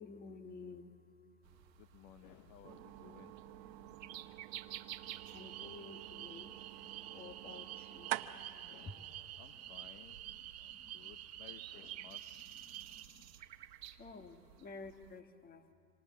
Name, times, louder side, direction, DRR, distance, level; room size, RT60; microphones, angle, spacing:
voice 1, 0.0-1.8 2.7-4.4 5.3-8.5 8.8-8.9 9.6-9.7 10.2-11.1 11.5-11.6 12.0-13.3 13.9-15.7, left 4 dB, 20° left, 8 dB, 1.4 m, -54 dB
sound 1, 1.4-15.2, right 12 dB, 85° right, 1.2 m, -55 dB
voice 2, 1.8-3.4 8.7-9.1 9.4-10.3 10.6-12.5, left 12 dB, 45° left, 10 dB, 0.9 m, -59 dB
sound 2, 2.6-10.4, right 17 dB, 50° right, 1.0 m, -48 dB
sound 3, 5.0-13.0, right 13 dB, 30° right, 1.2 m, -49 dB
27.0 x 26.5 x 7.4 m, 2.2 s
hypercardioid pair, 115°, 49 cm